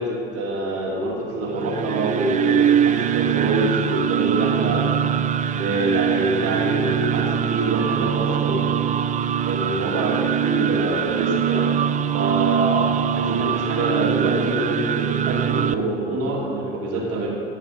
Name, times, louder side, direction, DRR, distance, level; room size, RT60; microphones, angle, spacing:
voice 1, 0.0-4.9 5.5-8.7 9.4-11.7 12.1-17.3, right 1 dB, 55° right, -3 dB, 3.2 m, -25 dB
sound 1, 1.5-15.7, right 9 dB, 25° right, 0.4 m, -22 dB
15.5 x 6.5 x 5.7 m, 2.4 s
hypercardioid pair, 75°, 29 cm